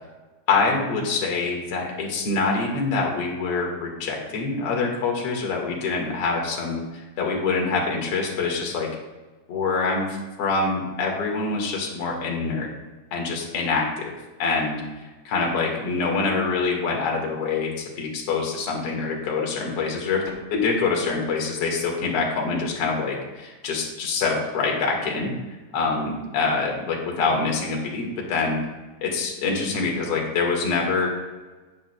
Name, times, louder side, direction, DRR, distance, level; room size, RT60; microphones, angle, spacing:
voice 1, 0.5-8.9 9.5-12.7 13.1-14.1 14.4-14.8 15.2-20.2 20.5-25.3 25.7-28.6 29.0-31.1, left 4 dB, 50° left, -1 dB, 2.2 m, -25 dB
18.0 x 6.2 x 2.2 m, 1.2 s
omnidirectional pair, 3.9 m